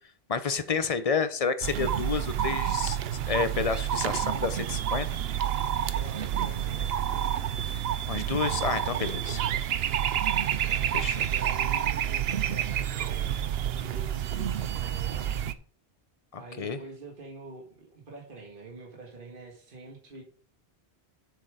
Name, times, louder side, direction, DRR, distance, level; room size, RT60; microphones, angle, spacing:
voice 1, 0.3-3.0 3.3-5.1 8.1-9.4 10.9-11.2 16.3-16.8, left 5 dB, 40° left, 11 dB, 0.8 m, -30 dB
sound 1, 1.6-15.5, right 10 dB, 70° right, 0.8 m, -29 dB
voice 2, 5.9-7.4 9.2-9.5 10.4-15.3 16.4-20.2, right 3 dB, 55° right, -1 dB, 1.9 m, -46 dB
7.4 x 6.6 x 5.0 m, 0.44 s
omnidirectional pair, 1.1 m